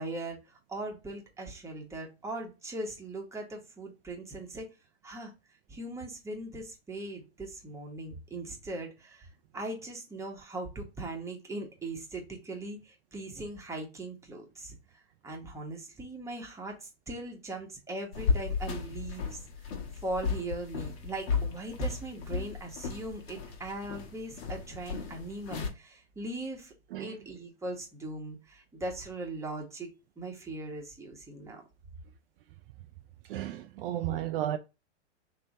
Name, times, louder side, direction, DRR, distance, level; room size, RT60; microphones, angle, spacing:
voice 1, 0.0-4.7 5.0-5.3 5.7-9.3 9.5-26.7 27.0-29.9 30.2-31.6, right 2 dB, 10° right, 1.1 m, -40 dB
sound 1, 18.1-25.7, left 5 dB, 60° left, 1.4 m, -34 dB
voice 2, 33.3-34.6, right 12 dB, 55° right, 0.5 m, -33 dB
3.4 x 2.9 x 4.0 m
hypercardioid pair, 125°, 35 cm